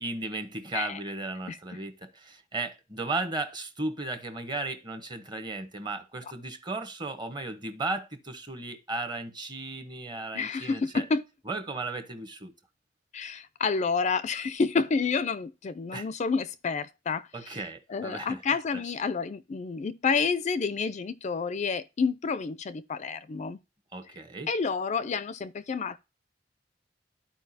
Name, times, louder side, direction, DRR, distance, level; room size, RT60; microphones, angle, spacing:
voice 1, 0.0-11.0 11.5-12.5 15.9-16.1 17.3-18.4 23.9-24.5, right 2 dB, 25° right, 1.0 m, -35 dB
voice 2, 10.3-11.2 13.1-17.6 17.9-23.6 24.5-26.0, left 5 dB, 40° left, 0.4 m, -29 dB
13.0 x 4.6 x 2.7 m
head